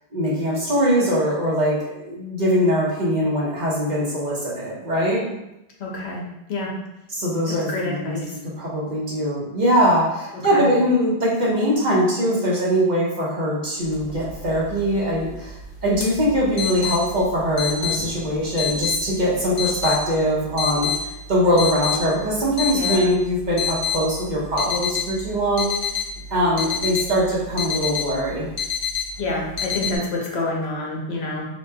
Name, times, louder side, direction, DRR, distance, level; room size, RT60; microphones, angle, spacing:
voice 1, 0.1-5.2 7.1-8.2 8.6-15.6 15.8-25.7 26.3-28.5, equal, 45° right, -6 dB, 1.0 m, -22 dB
voice 2, 5.8-6.2 6.5-6.7 7.7-8.4 10.5-10.7 22.7-23.1 29.2-31.5, left 2 dB, 75° left, -2 dB, 1.0 m, -27 dB
sound 1, 13.8-30.0, left 6 dB, 45° left, 0.8 m, -29 dB
4.3 x 3.0 x 2.2 m, 0.89 s
omnidirectional pair, 1.1 m